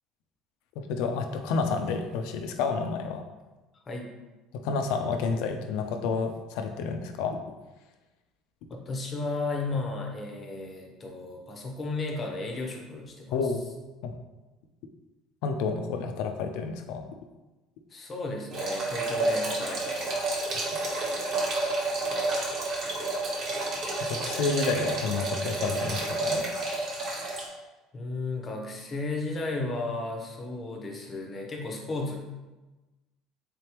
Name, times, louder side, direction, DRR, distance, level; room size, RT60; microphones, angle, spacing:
voice 1, 0.9-3.2 4.6-7.4 13.3-13.7 14.0-14.1 15.4-17.0 24.1-26.4, left 4 dB, 75° left, 6 dB, 0.5 m, -30 dB
voice 2, 8.7-13.4 17.9-20.4 27.3-27.6 27.9-32.2, left 2 dB, 30° left, 1 dB, 0.7 m, -34 dB
sound 1, 18.5-27.5, right 2 dB, 50° right, 1.0 m, -30 dB
3.7 x 3.4 x 2.9 m, 1.1 s
cardioid pair, 125°, 0 cm